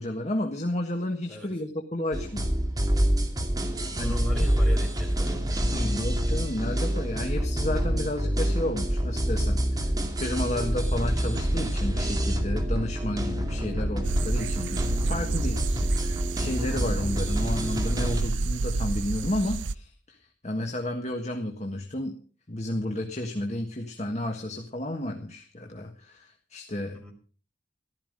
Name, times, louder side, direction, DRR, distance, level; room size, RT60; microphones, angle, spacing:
voice 1, 0.0-2.5 3.9-4.1 5.7-15.6 15.9-20.2 20.4-22.2 22.5-27.0, left 1 dB, 35° left, 3 dB, 1.5 m, -32 dB
sound 1, 2.1-18.2, equal, 20° right, 2.6 m, -27 dB
voice 2, 3.8-5.8 26.9-27.1, left 1 dB, 5° left, -1 dB, 5.4 m, -40 dB
sound 2, 14.0-19.7, right 3 dB, 85° right, 0.6 m, -30 dB
14.5 x 13.0 x 5.2 m, 0.42 s
head